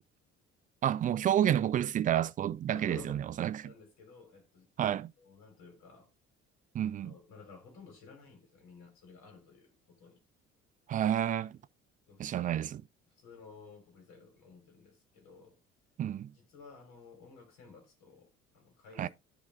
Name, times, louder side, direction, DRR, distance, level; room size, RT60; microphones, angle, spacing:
voice 1, 0.8-3.7 4.8-5.1 6.7-7.1 10.9-11.6 12.2-12.8 16.0-16.3 19.0-19.1, right 10 dB, 25° right, 0.3 m, -30 dB
voice 2, 2.7-3.2 3.6-6.1 6.9-10.2 12.1-12.6 13.2-15.6 16.3-18.3 18.5-19.1, left 4 dB, 60° left, 3.4 m, -53 dB
10.0 x 4.0 x 3.3 m
figure-of-eight pair, 50°, 36 cm